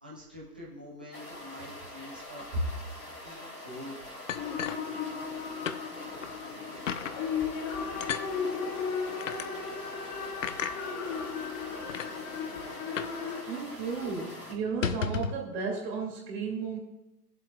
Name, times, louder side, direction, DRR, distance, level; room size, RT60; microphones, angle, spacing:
voice 1, 0.0-2.8 3.2-4.0, left 1 dB, 5° right, -7 dB, 0.4 m, -46 dB
sound 1, 1.1-14.5, left 1 dB, 90° left, 3.6 m, -45 dB
sound 2, 4.3-5.4 5.7-5.8 6.2-6.3 6.9-7.2 8.0-8.3 9.2-9.5 10.4-10.8 11.5-11.6 11.9-12.1 13.0-13.2 13.5-13.6 13.9-14.1 14.7-15.4, left 7 dB, 55° left, 0.7 m, -33 dB
sound 3, 4.3-13.4, left 5 dB, 15° left, 1.0 m, -36 dB
voice 2, 13.5-16.8, right 5 dB, 25° right, -1 dB, 2.7 m, -34 dB
19.5 x 7.6 x 2.4 m, 0.92 s
figure-of-eight pair, 125°, 48 cm